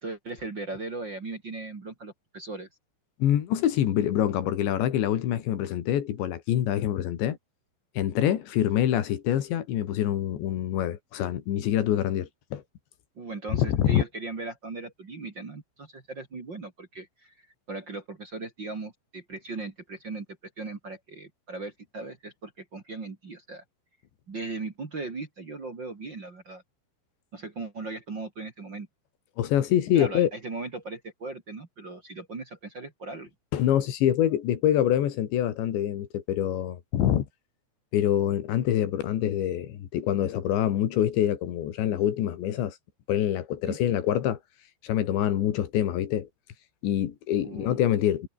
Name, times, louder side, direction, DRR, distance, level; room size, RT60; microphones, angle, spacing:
voice 1, 0.0-2.7 13.2-17.3 17.7-20.3 20.6-23.6 24.3-26.6 27.3-28.9 29.9-33.3 43.7-43.8 47.4-47.8, right 3 dB, 30° right, 2.5 m, -38 dB
voice 2, 3.2-7.4 8.0-12.6 13.5-14.0 29.4-30.3 33.5-37.3 37.9-42.8 43.1-44.4 44.8-46.3 46.8-48.3, left 11 dB, 80° left, 4.4 m, -25 dB
omnidirectional pair, 5.1 m